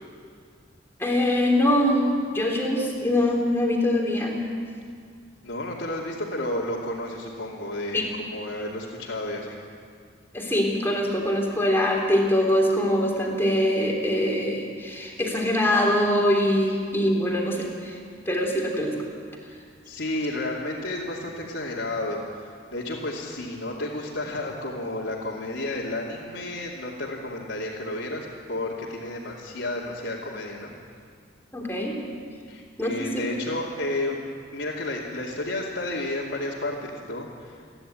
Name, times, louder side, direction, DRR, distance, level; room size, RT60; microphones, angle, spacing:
voice 1, 1.0-2.1 2.3-4.4 7.9-8.0 10.3-18.0 18.3-19.0 31.5-32.0 32.8-33.1, left 1 dB, 15° left, -1 dB, 3.5 m, -23 dB
voice 2, 5.4-9.6 19.8-30.7 32.5-34.2 34.5-37.6, left 1 dB, 75° left, -7 dB, 2.7 m, -32 dB
28.0 x 11.0 x 9.0 m, 2.1 s
head